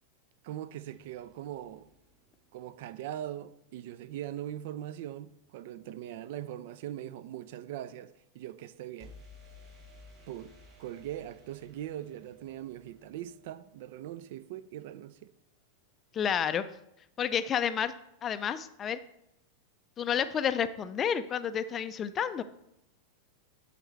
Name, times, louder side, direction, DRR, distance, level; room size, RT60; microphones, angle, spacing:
voice 1, 0.4-1.9 2.5-9.1 10.3-10.5 10.8-15.3, right 12 dB, 50° right, 0.3 m, -41 dB
sound 1, 0.9-2.9 9.0-14.8, left 2 dB, 30° right, 2.9 m, -57 dB
voice 2, 16.1-16.6 17.2-17.9 18.2-19.0 20.0-22.4, left 8 dB, 25° left, 0.4 m, -30 dB
11.0 x 4.1 x 3.2 m
figure-of-eight pair, 90°, 0 cm